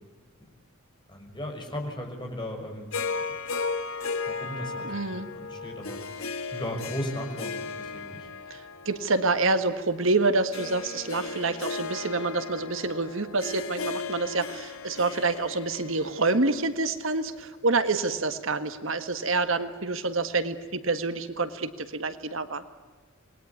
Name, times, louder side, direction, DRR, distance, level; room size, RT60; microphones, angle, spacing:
voice 1, 1.1-2.9 4.3-6.0 6.5-8.3, left 1 dB, 20° left, 2 dB, 6.0 m, -36 dB
Harp, 2.9-17.3, left 4 dB, 85° left, 1.7 m, -36 dB
voice 2, 4.8-5.3 8.5-22.6, right 3 dB, 70° right, 10 dB, 1.7 m, -27 dB
28.5 x 21.0 x 9.6 m, 1.3 s
head